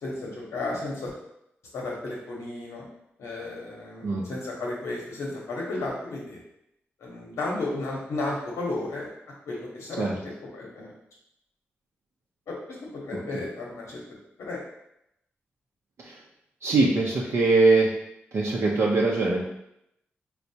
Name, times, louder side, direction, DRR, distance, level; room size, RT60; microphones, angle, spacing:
voice 1, 0.0-1.1 1.7-2.9 3.2-6.4 7.0-9.1 9.5-10.9 12.5-12.6 12.9-14.0 14.4-14.6, left 2 dB, 85° left, -3 dB, 0.7 m, -33 dB
voice 2, 16.6-17.9 18.3-19.4, right 3 dB, 70° right, -3 dB, 0.5 m, -22 dB
4.5 x 2.0 x 2.7 m, 0.79 s
cardioid pair, 55°, 5 cm